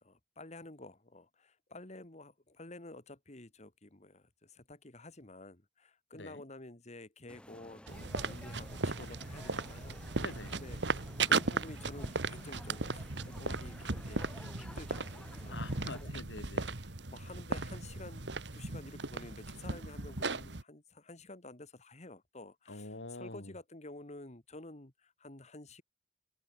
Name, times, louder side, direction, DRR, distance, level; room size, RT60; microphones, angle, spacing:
voice 1, 0.0-10.3 10.5-15.6 16.0-16.1 16.8-25.8, left 2 dB, 40° left, 2.4 m, -51 dB
voice 2, 6.1-6.4 10.2-10.6 15.5-16.7 22.7-23.5, left 2 dB, 85° left, 2.8 m, -45 dB
sound 1, 7.3-16.0, equal, 5° left, 6.1 m, -53 dB
sound 2, 7.9-20.6, right 3 dB, 75° right, 2.0 m, -37 dB
head